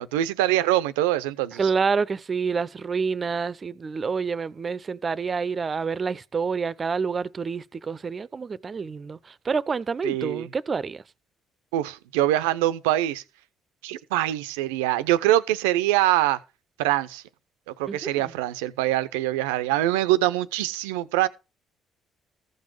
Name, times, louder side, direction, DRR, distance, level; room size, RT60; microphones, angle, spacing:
voice 1, 0.0-1.6 10.0-10.5 11.7-13.2 13.8-16.4 16.8-17.2 17.8-21.3, right 14 dB, 80° right, 0.7 m, -24 dB
voice 2, 1.6-11.0 17.9-18.3, right 5 dB, 40° right, 0.7 m, -28 dB
14.5 x 5.4 x 6.0 m
hypercardioid pair, 50°, 0 cm